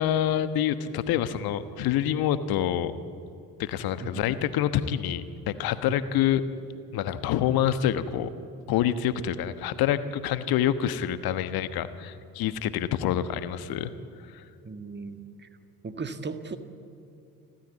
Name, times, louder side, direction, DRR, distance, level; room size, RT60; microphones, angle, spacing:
voice 1, 0.0-2.9 3.6-6.4 6.9-8.3 8.7-13.9 14.3-14.4, left 10 dB, 55° left, 12 dB, 1.3 m, -27 dB
voice 2, 14.6-15.5 15.8-16.6, right 4 dB, 25° right, 9 dB, 1.6 m, -36 dB
29.5 x 13.0 x 8.3 m, 2.7 s
figure-of-eight pair, 50°, 45 cm